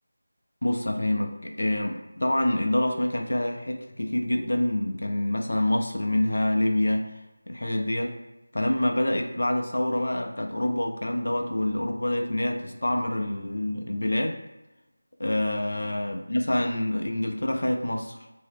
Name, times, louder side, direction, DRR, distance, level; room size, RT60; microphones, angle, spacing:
voice 1, 0.6-7.2 7.5-8.2 8.5-14.4 15.2-18.3, left 1 dB, 80° left, 3 dB, 0.4 m, -26 dB
2.7 x 2.7 x 3.4 m, 1.0 s
figure-of-eight pair, 175°, 0 cm